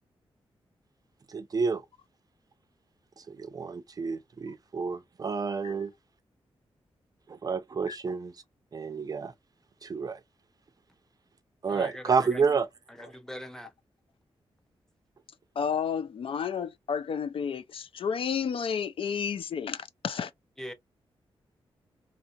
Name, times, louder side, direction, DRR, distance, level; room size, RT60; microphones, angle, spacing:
voice 1, 1.3-1.8 3.2-5.9 7.3-8.3 8.7-9.3 9.8-10.2 11.6-12.7 13.0-13.1, right 5 dB, 40° right, 0.4 m, -29 dB
voice 2, 11.7-12.4 12.9-13.7 20.6-20.7, left 1 dB, 5° left, 0.7 m, -42 dB
voice 3, 15.6-20.3, left 7 dB, 65° left, 0.3 m, -31 dB
2.8 x 2.7 x 2.3 m
wide cardioid pair, 120°, 10 cm